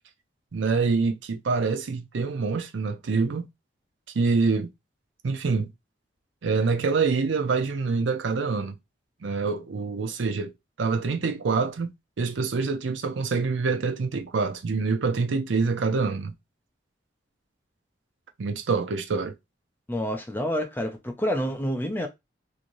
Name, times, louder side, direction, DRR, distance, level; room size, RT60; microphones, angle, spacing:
voice 1, 0.5-3.5 4.1-4.7 5.2-5.7 6.4-8.7 9.2-10.5 10.8-16.3 18.4-19.3, right 4 dB, 80° right, 0.5 m, -26 dB
voice 2, 19.9-22.1, equal, 10° left, 0.4 m, -28 dB
3.1 x 2.6 x 2.6 m
head